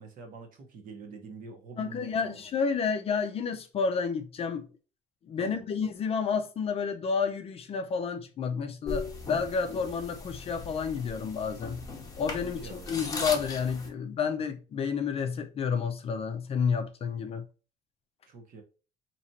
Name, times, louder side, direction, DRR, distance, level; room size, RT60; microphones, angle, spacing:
voice 1, 0.0-2.4 5.4-5.7 12.6-13.0 18.3-18.6, right 4 dB, 55° right, 1.0 m, -46 dB
voice 2, 1.8-4.7 5.2-11.9 12.2-17.4, left 6 dB, 35° left, 0.5 m, -30 dB
sound 1, 8.9-13.9, left 3 dB, 20° left, 0.8 m, -38 dB
4.2 x 2.9 x 2.7 m
cardioid pair, 160°, 18 cm